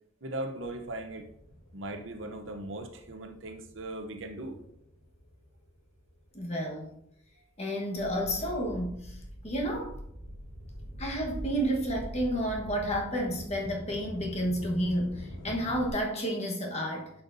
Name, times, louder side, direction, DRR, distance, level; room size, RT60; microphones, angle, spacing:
voice 1, 0.2-1.3 1.7-4.6, right 1 dB, 60° right, 6 dB, 0.8 m, -38 dB
sound 1, 0.6-7.3 7.9-15.9, equal, 80° left, 1.6 m, -48 dB
voice 2, 6.3-7.0 7.6-9.2 9.4-9.9 11.0-17.1, equal, 30° left, 0 dB, 1.3 m, -31 dB
sound 2, 7.9-13.0, equal, 50° left, 3.2 m, -43 dB
10.5 x 5.7 x 2.7 m, 0.76 s
head